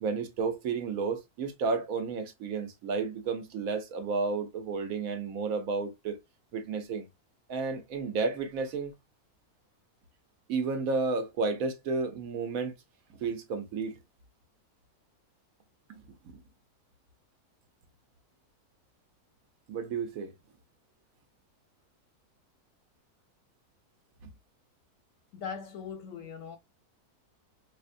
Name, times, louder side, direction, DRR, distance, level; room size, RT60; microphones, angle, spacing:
voice 1, 0.0-6.2 6.5-7.1 7.5-8.9 10.5-12.7 13.1-14.0 15.9-16.4 19.7-20.3 24.2-24.3, right 4 dB, 70° right, 1.1 m, -32 dB
voice 2, 25.3-26.6, left 6 dB, 65° left, 0.8 m, -40 dB
4.8 x 2.1 x 2.5 m
omnidirectional pair, 1.7 m